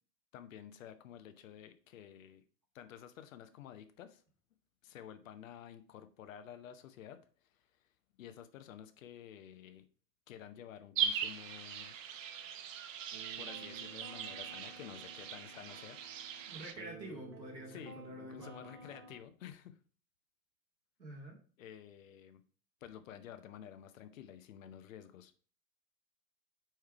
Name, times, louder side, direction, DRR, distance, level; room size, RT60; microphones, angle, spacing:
voice 1, 0.3-2.4 2.7-4.2 4.8-9.8 10.3-12.0 13.4-16.4 17.7-19.8 21.6-22.4 22.8-25.3, left 10 dB, 50° left, 10 dB, 0.8 m, -51 dB
sound 1, 11.0-16.7, right 7 dB, 50° right, 0.7 m, -40 dB
sound 2, 13.1-19.2, right 3 dB, 20° right, 0.3 m, -53 dB
voice 2, 16.4-18.6 21.0-21.4, right 1 dB, 85° right, -1 dB, 2.0 m, -48 dB
4.8 x 4.6 x 4.6 m, 0.42 s
figure-of-eight pair, 95°, 50 cm